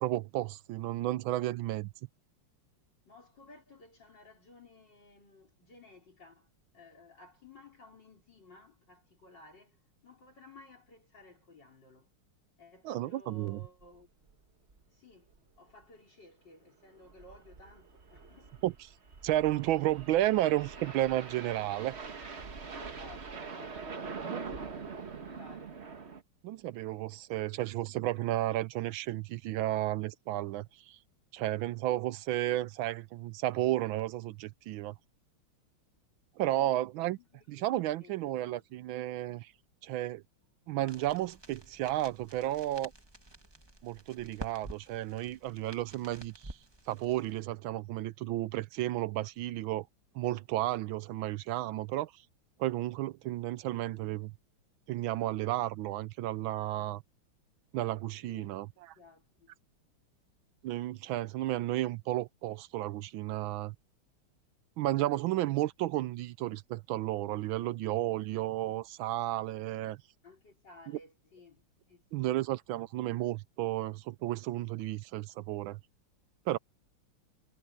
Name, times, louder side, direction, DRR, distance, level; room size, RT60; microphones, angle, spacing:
voice 1, 0.0-1.9 12.8-13.6 18.6-18.7 19.2-22.0 24.2-24.4 26.4-31.0 31.3-34.9 36.4-37.2 37.5-39.5 39.8-40.2 40.7-42.9 43.8-46.6 46.9-49.9 50.1-52.2 52.6-54.3 54.9-57.0 57.7-58.7 60.6-63.7 64.8-70.0 72.1-75.8 76.5-76.6, right 15 dB, 75° right, 1.3 m, -32 dB
voice 2, 3.0-12.1 12.6-14.1 14.9-15.3 15.6-18.6 22.8-25.8 36.5-36.8 37.2-38.9 58.2-58.6 58.9-59.5 70.2-72.4, left 3 dB, 55° left, 4.8 m, -56 dB
sound 1, 13.8-14.0 14.3-14.4 14.7-14.8 15.3-15.6 16.9-26.2, right 5 dB, 35° right, 1.5 m, -44 dB
sound 2, 40.9-47.4, right 2 dB, 15° right, 1.2 m, -50 dB
omnidirectional pair, 2.4 m